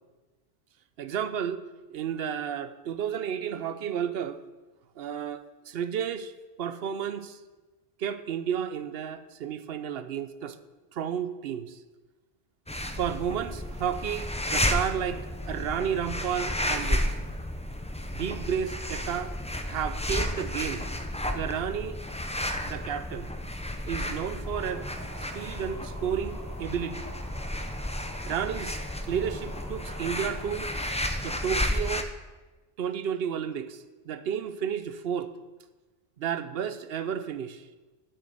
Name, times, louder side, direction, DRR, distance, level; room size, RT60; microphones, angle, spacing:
voice 1, 1.0-1.6 1.9-4.4 5.0-6.3 6.6-7.4 8.0-10.6 10.9-11.8 12.9-17.1 18.1-19.3 19.7-20.8 21.3-22.0 22.7-23.3 23.9-24.9 25.3-27.1 28.3-28.8 29.1-30.7 31.2-32.1 32.8-35.3 36.2-37.6, right 8 dB, 65° right, 12 dB, 0.8 m, -32 dB
sound 1, 12.7-32.0, left 1 dB, 10° left, 0.3 m, -32 dB
sound 2, 24.4-30.5, right 1 dB, 15° right, 1.2 m, -47 dB
8.1 x 6.5 x 7.9 m, 1.2 s
omnidirectional pair, 1.1 m